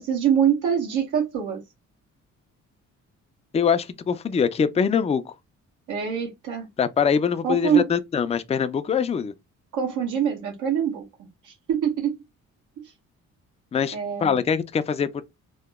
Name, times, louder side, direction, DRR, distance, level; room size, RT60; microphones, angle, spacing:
voice 1, 0.0-1.6 5.9-6.7 7.4-7.8 9.7-12.2 13.9-14.4, right 8 dB, 85° right, 1.4 m, -24 dB
voice 2, 3.5-5.2 6.8-9.3 13.7-15.2, left 7 dB, 20° left, 0.4 m, -23 dB
3.0 x 2.1 x 3.4 m
cardioid pair, 90°, 30 cm